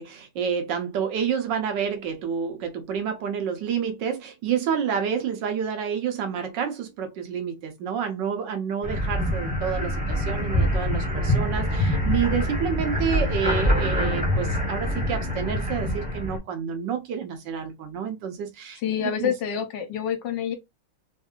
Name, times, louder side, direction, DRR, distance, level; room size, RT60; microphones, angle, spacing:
voice 1, 0.0-19.3, right 7 dB, 65° right, 1.4 m, -29 dB
sound 1, 8.8-16.4, equal, 5° right, 0.6 m, -25 dB
voice 2, 18.8-20.6, left 8 dB, 70° left, 1.4 m, -27 dB
3.6 x 2.6 x 2.3 m
omnidirectional pair, 2.2 m